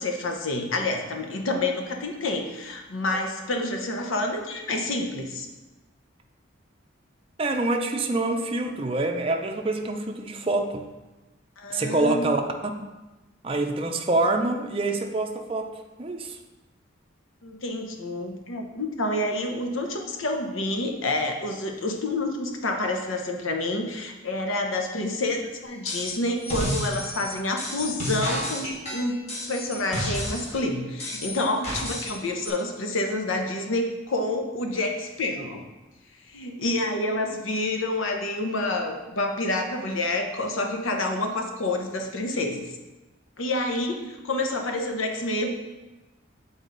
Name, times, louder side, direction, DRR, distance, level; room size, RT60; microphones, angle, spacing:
voice 1, 0.0-5.5 11.6-12.3 17.4-29.2 29.5-35.6 36.3-42.6 43.4-45.5, left 2 dB, 80° left, 4 dB, 0.9 m, -28 dB
voice 2, 7.4-10.9 11.7-12.4 13.4-15.7 16.0-16.4, right 2 dB, 25° right, 3 dB, 0.5 m, -26 dB
sound 1, 25.9-26.2 26.4-30.6 31.0-32.2 32.4-32.5, left 1 dB, 30° left, 1.5 m, -31 dB
8.2 x 4.0 x 3.9 m, 1.1 s
head